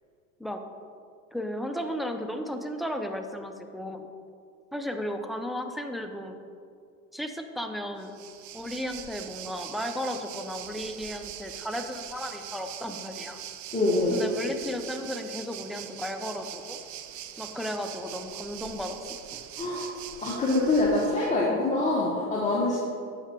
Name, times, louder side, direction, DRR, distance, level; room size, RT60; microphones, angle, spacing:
voice 1, 1.3-4.1 4.7-6.4 7.1-8.1 8.5-13.4 14.1-16.8 17.4-19.1 21.5-21.6, equal, ahead, 5 dB, 0.5 m, -34 dB
Waves surf, 8.0-21.3, right 11 dB, 45° right, 0.6 m, -42 dB
voice 2, 13.7-14.2 19.6-19.9 20.2-22.8, left 2 dB, 15° left, -5 dB, 1.3 m, -25 dB
7.9 x 5.7 x 4.4 m, 2.3 s
hypercardioid pair, 85°, 42 cm